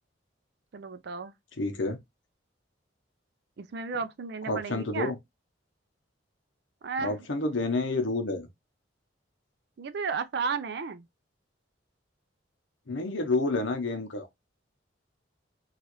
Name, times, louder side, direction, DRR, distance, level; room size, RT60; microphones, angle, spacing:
voice 1, 0.7-1.3 3.6-5.1 6.8-7.3 9.8-11.0, right 5 dB, 55° right, 0.4 m, -33 dB
voice 2, 1.6-2.0 4.5-5.2 7.0-8.5 12.9-14.3, left 2 dB, 80° left, 0.8 m, -29 dB
3.0 x 2.4 x 3.0 m
head